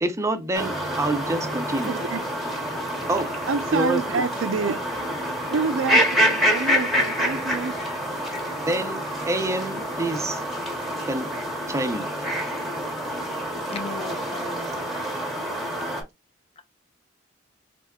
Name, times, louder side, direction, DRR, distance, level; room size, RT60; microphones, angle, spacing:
voice 1, 0.0-1.9 3.1-3.3 3.7-4.0 8.7-10.4 10.9-11.3 11.7-12.1, right 1 dB, 15° right, 0.5 m, -27 dB
sound 1, 0.5-16.0, equal, ahead, 0.9 m, -27 dB
voice 2, 1.9-2.2 3.5-4.8 5.5-7.7, right 4 dB, 80° right, 0.4 m, -27 dB
voice 3, 13.7-14.8 16.6-16.7, left 3 dB, 30° left, 0.6 m, -36 dB
3.6 x 3.4 x 2.3 m
head